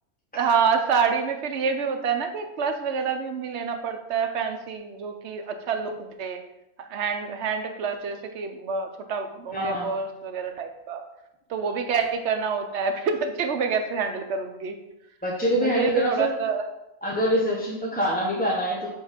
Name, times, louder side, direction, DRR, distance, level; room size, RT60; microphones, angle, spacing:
voice 1, 0.3-6.4 6.8-11.0 11.5-14.8 15.6-16.6, right 6 dB, 60° right, 5 dB, 0.9 m, -27 dB
voice 2, 9.5-9.9 15.2-16.3 17.0-18.9, equal, 10° left, -4 dB, 0.7 m, -25 dB
7.1 x 3.1 x 5.0 m, 0.91 s
omnidirectional pair, 1.4 m